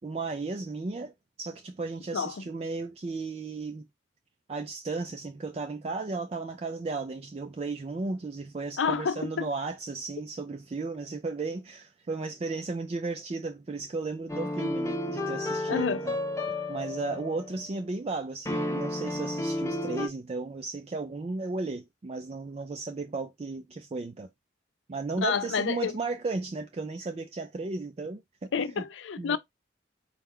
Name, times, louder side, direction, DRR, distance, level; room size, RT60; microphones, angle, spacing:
voice 1, 0.0-1.1 1.4-3.8 4.5-16.2 16.7-24.3 24.9-28.5 28.8-28.9 29.2-29.4, right 3 dB, 30° right, 0.3 m, -35 dB
voice 2, 2.1-2.4 8.8-9.4 15.7-16.1 25.2-25.9 28.5-29.4, left 6 dB, 75° left, 0.5 m, -29 dB
sound 1, 14.3-17.6 18.5-20.1, left 1 dB, 15° left, 0.6 m, -32 dB
4.4 x 2.3 x 3.5 m
head